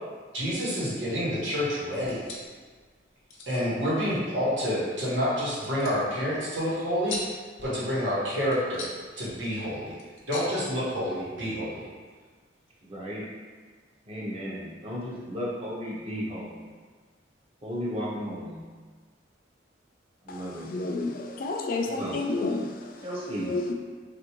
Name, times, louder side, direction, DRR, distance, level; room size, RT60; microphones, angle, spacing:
voice 1, 0.3-2.2 3.5-7.2 7.6-8.8 9.2-9.9 10.3-11.8, equal, 80° right, -8 dB, 1.2 m, -28 dB
sound 1, 1.9-11.4, left 2 dB, 85° left, 0.6 m, -44 dB
voice 2, 12.8-13.3 14.1-16.7 17.6-18.6 20.2-20.7 21.9-22.2 23.0-23.6, equal, 30° right, -5 dB, 0.6 m, -34 dB
voice 3, 20.7-23.0 23.4-23.7, left 3 dB, 45° left, 2 dB, 0.3 m, -30 dB
3.3 x 2.5 x 2.9 m, 1.5 s
head